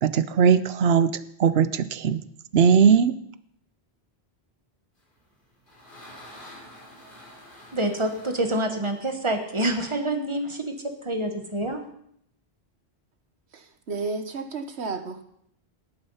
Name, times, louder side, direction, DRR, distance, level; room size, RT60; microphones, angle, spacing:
voice 1, 0.0-2.2 2.5-3.2, right 7 dB, 70° right, 14 dB, 1.0 m, -19 dB
sound 1, 5.2-9.9, left 1 dB, 50° left, 3.7 m, -48 dB
voice 2, 7.7-11.8, right 1 dB, 25° right, 5 dB, 1.7 m, -27 dB
voice 3, 13.5-15.2, right 4 dB, 85° right, 9 dB, 1.5 m, -32 dB
19.0 x 8.9 x 5.7 m, 0.70 s
omnidirectional pair, 1.1 m